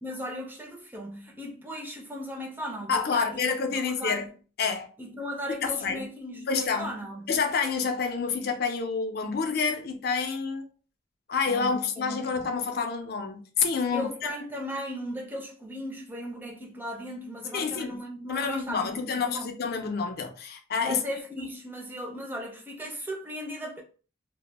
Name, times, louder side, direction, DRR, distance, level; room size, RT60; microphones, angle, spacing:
voice 1, 0.0-4.2 5.0-7.3 11.5-12.5 13.9-19.6 20.8-23.8, equal, 10° right, 0.4 m, -37 dB
voice 2, 2.9-4.3 4.6-4.9 5.6-6.1 6.5-6.9 7.3-10.7 11.3-14.1 17.5-18.0 18.3-21.0 21.4-21.5, left 5 dB, 55° left, 0.4 m, -28 dB
2.1 x 2.0 x 3.2 m
head